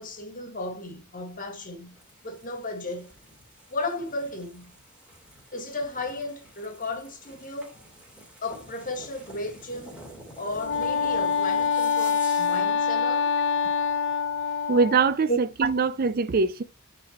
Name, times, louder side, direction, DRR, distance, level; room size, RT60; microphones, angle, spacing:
voice 1, 0.0-2.0 2.2-3.1 3.7-4.7 5.5-7.7 8.4-10.0 10.4-13.3 15.3-15.4, left 1 dB, 40° left, 1.7 m, -34 dB
sound 1, 1.8-12.8, right 1 dB, 5° right, 2.5 m, -48 dB
Wind instrument woodwind instrument, 10.5-15.2, left 6 dB, 60° left, 0.9 m, -25 dB
voice 2, 14.7-16.6, right 4 dB, 40° right, 0.4 m, -23 dB
8.5 x 4.1 x 4.2 m
head